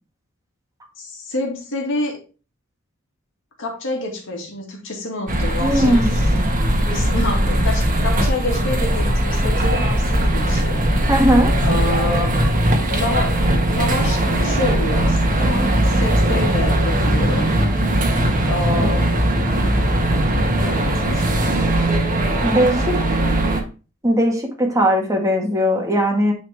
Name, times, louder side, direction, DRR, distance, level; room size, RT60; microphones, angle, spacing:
voice 1, 1.0-2.2 3.6-6.2 6.9-10.8 11.6-12.4 12.9-13.4 13.7-17.5 18.5-19.4 20.6-23.6, left 2 dB, 65° left, 0 dB, 2.2 m, -28 dB
sound 1, 5.3-23.6, right 1 dB, 40° right, 1.5 m, -19 dB
voice 2, 5.6-6.5 11.1-11.5 18.8-19.0 22.4-22.8 24.0-26.3, equal, 15° right, 1 dB, 1.7 m, -19 dB
9.3 x 4.2 x 3.5 m, 0.34 s
head